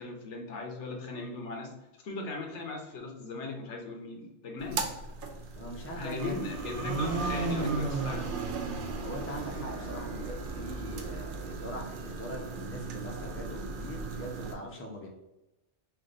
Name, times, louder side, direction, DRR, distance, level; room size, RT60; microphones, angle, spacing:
voice 1, 0.0-1.7 2.0-5.0 5.9-8.3, left 3 dB, 85° left, 2 dB, 1.1 m, -38 dB
sound 1, 4.6-14.5, right 3 dB, 60° right, 0.6 m, -35 dB
voice 2, 5.6-6.5 9.0-15.1, equal, 15° left, 0 dB, 0.4 m, -42 dB
3.4 x 2.5 x 3.8 m, 0.95 s
omnidirectional pair, 1.2 m